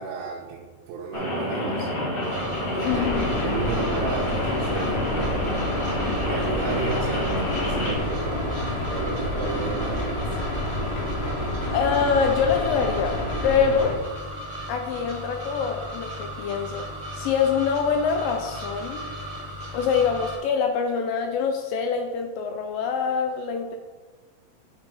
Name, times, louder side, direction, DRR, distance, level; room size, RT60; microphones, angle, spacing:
voice 1, 0.0-2.2 2.8-5.6 6.2-8.5 8.9-10.4, right 4 dB, 85° right, -3 dB, 2.8 m, -33 dB
Rain, 1.1-8.0, left 1 dB, 45° left, 1.7 m, -29 dB
sound 1, 2.2-20.4, equal, 40° right, 1.0 m, -36 dB
voice 2, 2.8-3.3 11.7-13.2 13.4-14.0 14.7-16.9 17.1-19.0 19.7-23.8, left 6 dB, 85° left, 4 dB, 2.0 m, -24 dB
Space Shuttle Launch, 2.8-14.0, left 1 dB, 70° left, 3.3 m, -29 dB
9.3 x 3.8 x 4.8 m, 1.3 s
omnidirectional pair, 4.6 m